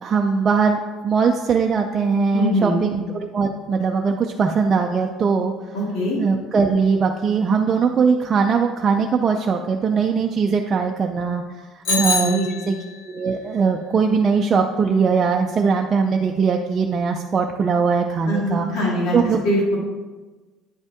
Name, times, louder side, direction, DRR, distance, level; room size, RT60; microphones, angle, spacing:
voice 1, 0.0-5.8 6.2-11.4 11.8-12.7 13.1-18.7 19.1-19.4, right 5 dB, 30° right, 2 dB, 0.4 m, -20 dB
voice 2, 2.3-2.9 5.7-6.2 11.9-12.7 18.2-19.2 19.4-19.8, equal, 80° left, -4 dB, 2.3 m, -23 dB
Bicycle bell, 11.8-13.1, left 2 dB, 55° left, 2.0 m, -25 dB
9.6 x 5.4 x 3.5 m, 1.2 s
cardioid pair, 145°, 0 cm